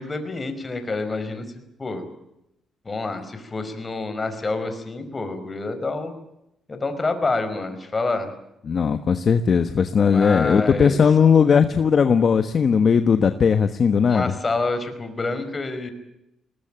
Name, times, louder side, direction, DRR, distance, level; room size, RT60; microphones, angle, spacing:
voice 1, 0.0-1.4 1.8-2.0 2.8-6.1 6.7-8.3 10.1-11.1 14.1-15.9, left 3 dB, 25° left, 9 dB, 5.0 m, -27 dB
voice 2, 8.7-14.3, left 6 dB, 50° left, 10 dB, 1.2 m, -18 dB
21.0 x 20.0 x 8.9 m, 0.83 s
cardioid pair, 90°, 0 cm